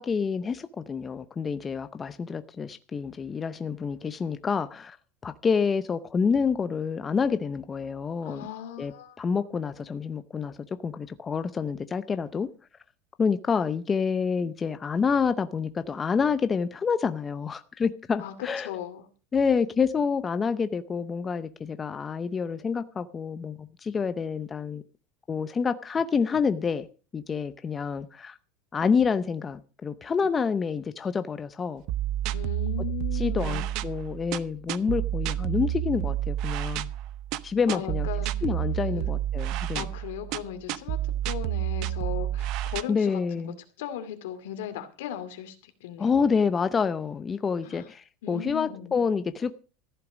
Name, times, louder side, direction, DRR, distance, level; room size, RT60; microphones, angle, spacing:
voice 1, 0.0-5.0 5.2-8.4 8.8-8.9 9.2-10.6 10.8-12.5 13.2-18.7 19.3-24.8 25.3-26.9 27.1-28.4 28.7-31.8 33.1-36.9 37.4-38.1 38.4-39.8 42.9-43.6 46.0-49.5, left 5 dB, 20° left, 0.6 m, -28 dB
voice 2, 8.2-9.6 18.2-19.1 32.3-33.7 37.7-38.3 38.8-39.1 39.8-41.0 41.2-46.2 47.6-47.8 48.2-49.0, left 10 dB, 85° left, 2.4 m, -38 dB
sound 1, 31.9-42.8, right 12 dB, 50° right, 0.7 m, -30 dB
14.5 x 8.3 x 6.2 m
supercardioid pair, 145°, 0 cm